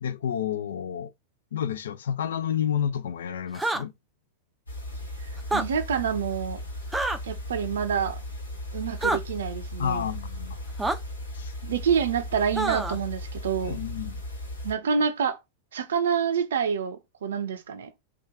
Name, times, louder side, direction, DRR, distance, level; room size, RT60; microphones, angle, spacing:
voice 1, 0.0-1.1 1.5-3.9 9.8-10.6 11.3-11.5 13.6-14.2, left 9 dB, 65° left, 0.4 m, -30 dB
sound 1, 3.5-3.8 5.4-5.7 6.9-7.2 9.0-9.2 10.8-11.0 12.6-13.0, right 2 dB, 5° right, 0.4 m, -26 dB
sound 2, 4.7-14.7, left 1 dB, 80° left, 1.0 m, -37 dB
voice 2, 5.5-6.6 7.2-8.2 8.7-10.1 11.6-13.8 14.6-15.4 15.7-17.9, right 7 dB, 65° right, 0.5 m, -27 dB
3.0 x 2.3 x 3.5 m
figure-of-eight pair, 90°, 0 cm